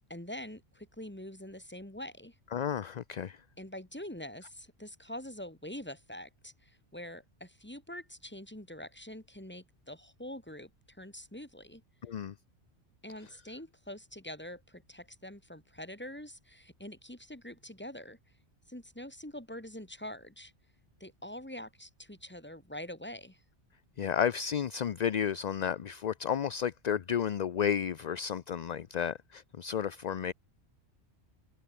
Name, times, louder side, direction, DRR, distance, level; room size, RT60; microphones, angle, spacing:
voice 1, 0.1-2.3 3.6-11.8 13.0-18.2 18.7-20.5 21.0-23.4, left 1 dB, 10° left, 3.0 m, -45 dB
voice 2, 2.5-3.4 12.0-12.3 24.0-30.3, left 8 dB, 50° left, 0.6 m, -32 dB
omnidirectional pair, 1.2 m